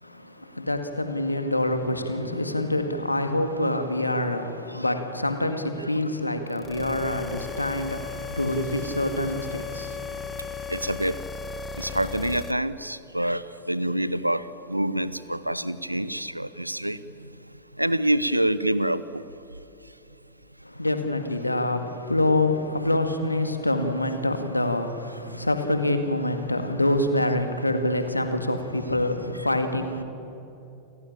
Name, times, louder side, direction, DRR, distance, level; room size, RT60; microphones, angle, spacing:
voice 1, 0.0-10.9 20.6-30.0, left 1 dB, 85° left, 2.0 m, -26 dB
sound 1, 6.6-12.5, left 5 dB, 15° left, 1.1 m, -36 dB
voice 2, 10.7-11.2 11.8-17.0 17.8-19.2 25.3-25.4, right 1 dB, 90° right, 0.8 m, -26 dB
29.0 x 15.5 x 8.9 m
figure-of-eight pair, 90°, 0 cm